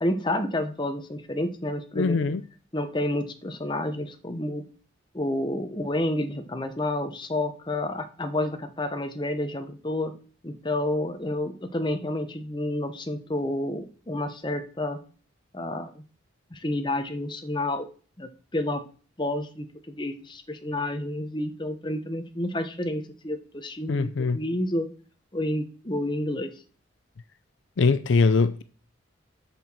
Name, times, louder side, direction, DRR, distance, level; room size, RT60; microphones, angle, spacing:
voice 1, 0.0-2.2 2.7-4.6 5.1-10.1 10.4-15.0 15.5-16.0 16.5-17.8 18.2-18.8 19.2-24.9 25.3-26.5, left 1 dB, 25° left, 0.9 m, -30 dB
voice 2, 1.9-2.4 23.9-24.4 27.8-28.6, left 4 dB, 65° left, 0.5 m, -22 dB
6.9 x 5.9 x 6.1 m
head